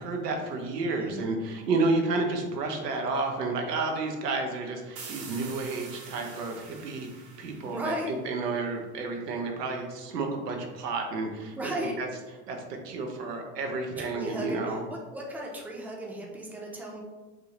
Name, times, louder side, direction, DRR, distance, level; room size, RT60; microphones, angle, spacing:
voice 1, 0.0-7.1 7.4-11.5 12.0-12.1 12.5-14.8, right 3 dB, 80° right, 2 dB, 0.9 m, -31 dB
voice 2, 0.9-1.3 7.6-8.1 11.5-11.9 14.0-17.0, right 1 dB, 5° right, -2 dB, 0.7 m, -36 dB
sound 1, 5.0-8.6, right 4 dB, 50° right, 1.3 m, -46 dB
4.8 x 2.5 x 2.9 m, 1.2 s
hypercardioid pair, 85°, 47 cm